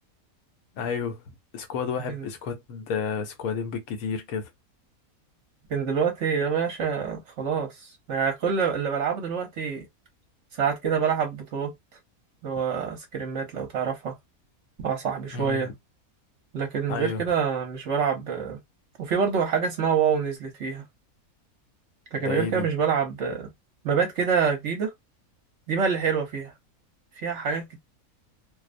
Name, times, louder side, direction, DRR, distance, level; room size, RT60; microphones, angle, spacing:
voice 1, 0.8-4.5 15.3-15.7 16.9-17.2 22.2-22.7, left 6 dB, 75° left, 1.1 m, -31 dB
voice 2, 5.7-9.9 10.5-11.7 12.4-14.1 14.8-15.7 16.5-18.6 19.0-20.8 22.1-23.5 23.8-24.9 25.7-26.5 27.2-27.8, right 6 dB, 60° right, 0.9 m, -26 dB
2.5 x 2.0 x 2.4 m
omnidirectional pair, 1.5 m